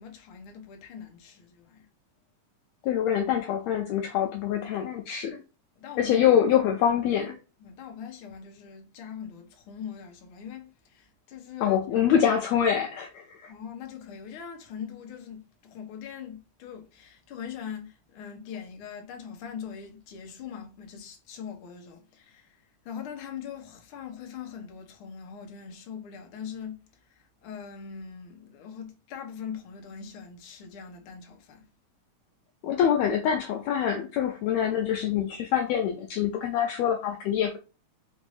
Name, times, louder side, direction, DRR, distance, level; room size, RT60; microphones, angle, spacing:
voice 1, 0.0-1.9 5.8-6.3 7.6-12.2 13.5-31.7, left 7 dB, 65° left, 1.3 m, -42 dB
voice 2, 2.8-5.4 6.0-7.4 11.6-13.5 32.6-37.6, left 9 dB, 85° left, 1.5 m, -25 dB
5.1 x 2.6 x 3.2 m
omnidirectional pair, 3.6 m